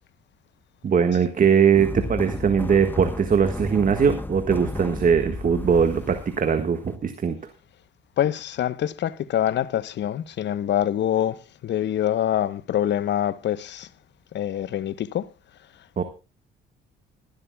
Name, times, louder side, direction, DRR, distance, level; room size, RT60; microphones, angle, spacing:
voice 1, 0.8-7.4 16.0-16.1, right 6 dB, 40° right, 1.6 m, -21 dB
sound 1, 1.8-6.9, left 2 dB, 10° left, 1.0 m, -33 dB
voice 2, 8.2-13.9 14.3-15.3, left 11 dB, 60° left, 0.9 m, -25 dB
22.0 x 11.5 x 2.3 m
cardioid pair, 80°, 21 cm